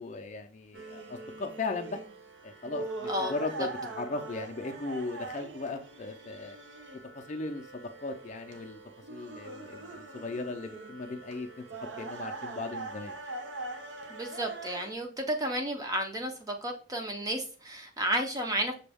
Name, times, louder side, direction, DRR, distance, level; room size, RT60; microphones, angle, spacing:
voice 1, 0.0-2.0 2.4-6.6 7.1-8.8 9.1-11.6 12.0-13.2, left 3 dB, 35° left, 0.4 m, -37 dB
sound 1, 0.7-14.9, right 2 dB, 65° right, 0.5 m, -42 dB
voice 2, 14.1-18.7, right 1 dB, 20° right, 0.5 m, -32 dB
6.0 x 2.3 x 3.4 m
head